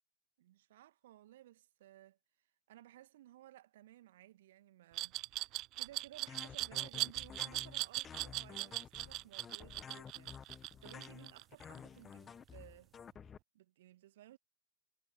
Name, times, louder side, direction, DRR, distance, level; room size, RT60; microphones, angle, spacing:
voice 1, 0.4-12.9 13.5-14.4, right 14 dB, 55° right, 2.1 m, -59 dB
Glass, 4.9-11.8, right 19 dB, 40° right, 0.4 m, -39 dB
sound 1, 6.3-13.4, left 7 dB, 20° left, 1.4 m, -52 dB
sound 2, 6.9-13.1, right 6 dB, 20° right, 6.6 m, -79 dB
figure-of-eight pair, 90°, 0 cm